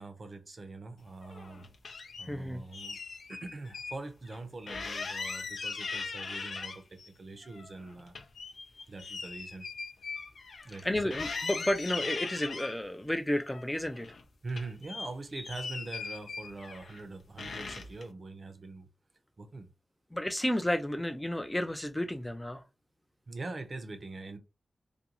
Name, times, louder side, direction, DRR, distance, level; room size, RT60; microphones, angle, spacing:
voice 1, 0.0-1.7 2.2-3.0 3.3-8.1 8.9-9.7 10.6-11.1 14.4-18.9 19.4-19.7 23.3-24.4, right 3 dB, 50° right, 0.6 m, -43 dB
sound 1, 1.2-2.3 2.7-4.0 4.3-4.4 4.7-7.1 7.4-10.8 11.1-12.8 13.4-14.2 14.5-17.0 17.4-18.0, left 4 dB, 75° left, 0.4 m, -39 dB
voice 2, 2.2-2.6 10.8-14.1 20.1-22.6, left 1 dB, 10° left, 0.3 m, -32 dB
2.5 x 2.2 x 2.8 m
wide cardioid pair, 95°, 0 cm